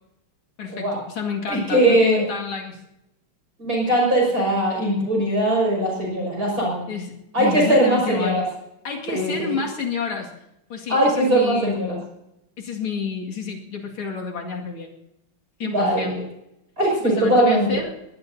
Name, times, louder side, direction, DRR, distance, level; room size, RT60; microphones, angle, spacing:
voice 1, 0.6-2.8 6.9-8.4 8.8-10.3 10.7-12.1 12.6-15.0 15.6-16.2 17.0-18.0, left 6 dB, 80° left, 0 dB, 3.1 m, -29 dB
voice 2, 1.5-2.2 3.6-6.8 7.3-8.4 9.1-9.5 10.9-12.0 15.7-16.0 16.8-17.7, right 1 dB, 45° right, -2 dB, 6.6 m, -20 dB
24.5 x 19.5 x 2.8 m, 0.86 s
omnidirectional pair, 2.3 m